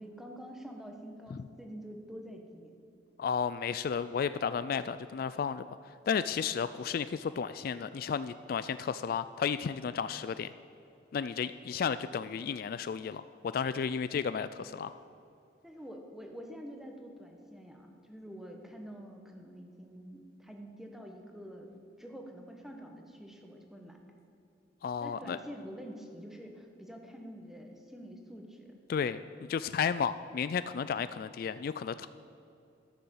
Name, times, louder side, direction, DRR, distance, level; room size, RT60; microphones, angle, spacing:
voice 1, 0.0-2.7 15.6-21.7 22.0-24.0 25.0-28.7, equal, ahead, 2 dB, 1.3 m, -47 dB
voice 2, 3.2-5.6 6.1-10.5 11.1-13.2 13.5-15.0 24.8-25.4 28.9-29.2 29.5-32.1, left 6 dB, 55° left, 13 dB, 0.3 m, -33 dB
13.0 x 7.0 x 7.9 m, 2.7 s
head